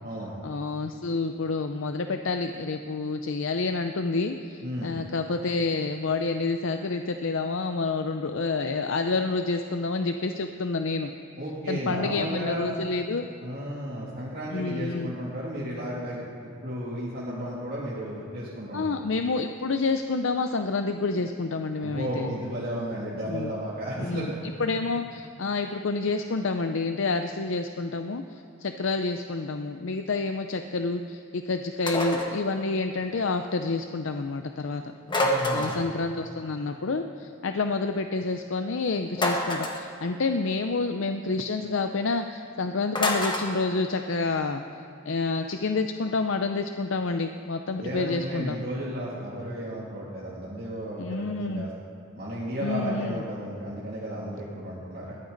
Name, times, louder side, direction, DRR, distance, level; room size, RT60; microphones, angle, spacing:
voice 1, 0.4-11.1 11.7-13.3 14.5-15.1 18.7-22.3 23.3-23.5 24.0-24.3 24.6-34.8 35.5-44.6 45.0-48.6 51.0-51.7 52.6-53.2, left 3 dB, 65° left, 7 dB, 0.6 m, -28 dB
voice 2, 4.6-4.9 11.4-12.7 13.4-16.2 16.6-19.0 21.8-24.4 35.2-35.7 47.8-51.7 52.1-55.1, equal, 50° right, -8 dB, 2.6 m, -33 dB
sound 1, 31.9-32.4 35.1-35.9 39.2-39.9 43.0-43.5, left 1 dB, 25° left, 1.6 m, -26 dB
21.0 x 15.0 x 4.0 m, 2.7 s
head